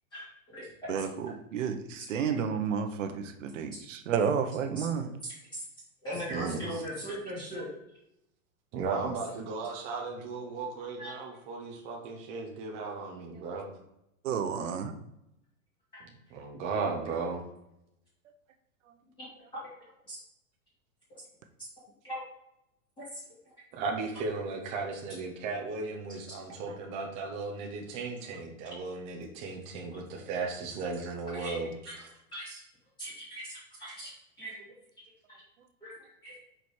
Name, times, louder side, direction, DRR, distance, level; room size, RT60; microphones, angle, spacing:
voice 1, 0.1-0.9 2.0-2.1 4.8-4.9 5.2-5.6 6.0-7.8 11.0-11.1 19.2-19.7 20.1-20.2 21.1-21.2 22.0-22.2 23.0-23.2 26.3-26.4 31.3-31.5 31.9-32.0 32.3-32.6 33.0-34.1 34.4-34.6 35.3-35.4 35.8-35.9 36.2-36.3, equal, 10° left, -10 dB, 2.2 m, -40 dB
voice 2, 0.9-5.1 14.2-14.9, right 7 dB, 60° right, 7 dB, 0.9 m, -31 dB
voice 3, 6.3-6.8 8.7-13.6 16.3-17.4 23.7-32.1, right 4 dB, 15° right, 0 dB, 0.6 m, -36 dB
5.1 x 4.4 x 4.6 m, 0.82 s
supercardioid pair, 165°, 42 cm